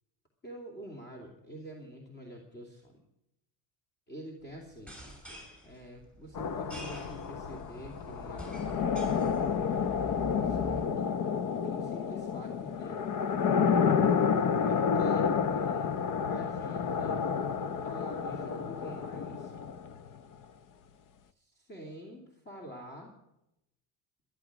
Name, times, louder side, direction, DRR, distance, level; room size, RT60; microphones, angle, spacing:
voice 1, 0.4-2.9 4.1-4.9 5.6-9.7 10.4-10.8 11.6-13.0 14.6-15.9 16.2-17.2 17.8-19.5 21.5-23.1, equal, 25° left, 0 dB, 2.9 m, -46 dB
sound 1, 4.7-10.8, right 1 dB, 5° left, 6.3 m, -45 dB
sound 2, 6.3-20.2, left 6 dB, 45° left, 0.9 m, -30 dB
13.5 x 12.0 x 6.2 m, 0.84 s
cardioid pair, 150°, 45 cm